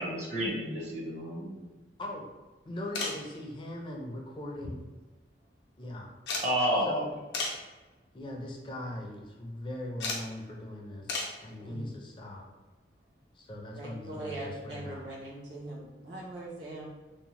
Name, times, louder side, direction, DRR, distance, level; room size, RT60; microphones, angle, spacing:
voice 1, 0.0-1.7 6.4-7.1, equal, 40° right, -4 dB, 0.5 m, -30 dB
voice 2, 2.6-4.8 5.8-6.1 6.9-7.1 8.1-12.5 13.4-15.0, left 1 dB, 25° left, 0 dB, 0.4 m, -40 dB
sound 1, 2.9-3.3 4.5-5.1 5.4-5.5 6.3-6.5 7.3-7.6 8.4-8.6 10.0-10.3 11.1-11.4 13.0-13.1 14.5-14.6 14.8-14.9, left 3 dB, 75° left, 0.5 m, -34 dB
voice 3, 13.7-16.9, right 2 dB, 90° right, -4 dB, 0.8 m, -41 dB
2.7 x 2.0 x 2.9 m, 1.2 s
head